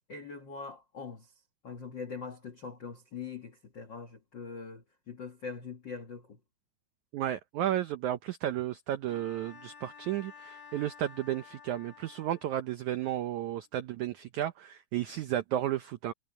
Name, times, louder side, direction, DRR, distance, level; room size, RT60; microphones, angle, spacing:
voice 1, 0.1-1.3 1.6-6.4, left 5 dB, 75° left, 1.0 m, -42 dB
voice 2, 7.1-16.1, right 12 dB, 85° right, 1.7 m, -33 dB
Bowed string instrument, 9.1-12.8, left 6 dB, 45° left, 3.6 m, -52 dB
omnidirectional pair, 4.4 m